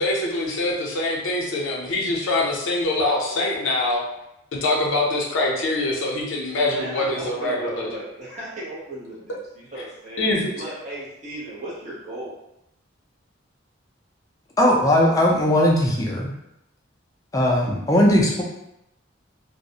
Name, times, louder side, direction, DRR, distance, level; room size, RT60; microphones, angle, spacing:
voice 1, 0.0-4.0 4.5-7.9 10.2-10.5, left 2 dB, 75° left, -3 dB, 0.5 m, -24 dB
voice 2, 6.8-10.3 10.6-12.4, right 1 dB, 35° right, -8 dB, 0.7 m, -36 dB
voice 3, 14.6-16.3 17.3-18.4, left 1 dB, 15° left, -2 dB, 0.4 m, -18 dB
2.3 x 2.0 x 2.7 m, 0.83 s
head